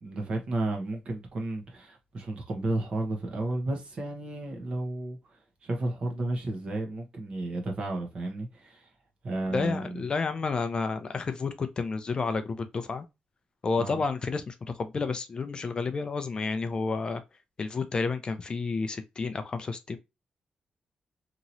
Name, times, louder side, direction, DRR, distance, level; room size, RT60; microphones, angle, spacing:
voice 1, 0.0-8.9 9.2-10.0 13.8-14.0, right 2 dB, 45° right, 1.0 m, -33 dB
voice 2, 9.5-13.0 13.6-17.2 17.6-20.0, left 4 dB, 35° left, 0.4 m, -30 dB
3.0 x 2.7 x 2.5 m
wide cardioid pair, 170°, 3 cm